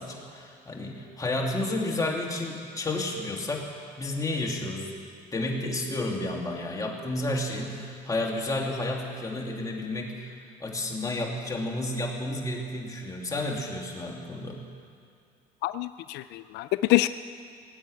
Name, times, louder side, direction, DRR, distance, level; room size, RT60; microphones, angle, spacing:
voice 1, 0.0-3.7 4.0-5.0 5.3-10.3 10.6-14.6, left 2 dB, 20° left, 0 dB, 2.6 m, -31 dB
voice 2, 15.6-17.1, left 18 dB, 85° left, 13 dB, 0.4 m, -26 dB
19.5 x 8.4 x 8.7 m, 2.5 s
cardioid pair, 110°, 17 cm